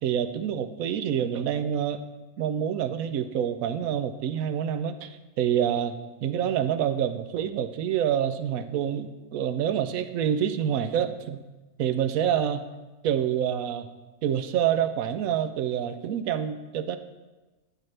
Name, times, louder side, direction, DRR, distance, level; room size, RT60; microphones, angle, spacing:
voice 1, 0.0-2.0 2.4-5.1 5.4-11.4 11.8-12.6 13.0-13.9 14.2-17.0, right 9 dB, 75° right, 10 dB, 1.0 m, -27 dB
12.5 x 7.9 x 3.3 m, 1.2 s
omnidirectional pair, 1.5 m